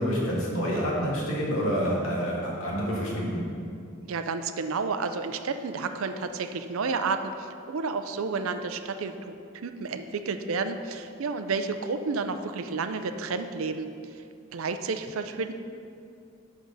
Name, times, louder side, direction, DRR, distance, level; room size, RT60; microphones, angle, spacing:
voice 1, 0.0-3.4, equal, 85° left, -4 dB, 1.9 m, -28 dB
voice 2, 4.1-9.3 9.6-13.9 14.5-15.5, right 4 dB, 85° right, 9 dB, 0.5 m, -31 dB
6.3 x 6.1 x 5.4 m, 2.5 s
head